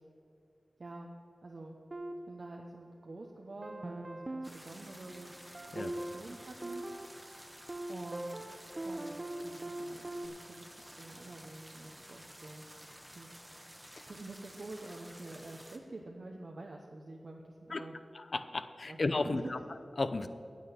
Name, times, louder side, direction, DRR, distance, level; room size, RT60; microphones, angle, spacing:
voice 1, 0.8-1.1 1.4-1.8 2.3-5.3 5.7-6.8 7.9-8.4 8.8-12.7 13.1-13.3 14.1-18.0 18.8-19.0 19.2-19.5, right 2 dB, 65° right, 0 dB, 1.0 m, -47 dB
sound 1, 1.9-3.2 3.6-10.3, right 1 dB, 40° right, 0.7 m, -43 dB
sound 2, 4.4-15.8, equal, 10° right, 1.3 m, -52 dB
voice 2, 18.1-19.6 20.0-20.3, left 3 dB, 65° left, 11 dB, 0.6 m, -33 dB
9.4 x 7.6 x 8.4 m, 2.5 s
cardioid pair, 45°, 0 cm